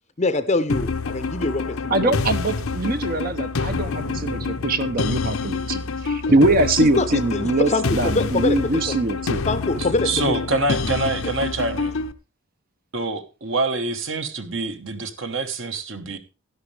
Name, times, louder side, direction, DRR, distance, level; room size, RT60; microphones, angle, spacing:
voice 1, 0.2-2.2 6.8-9.0 9.5-10.4, left 2 dB, 30° left, 0.6 m, -24 dB
sound 1, 0.7-12.1, left 4 dB, 70° left, 0.7 m, -27 dB
voice 2, 1.9-9.4, right 2 dB, 40° right, 0.7 m, -22 dB
voice 3, 10.0-12.0 12.9-16.2, right 3 dB, 60° right, 1.3 m, -26 dB
12.5 x 11.0 x 3.3 m
head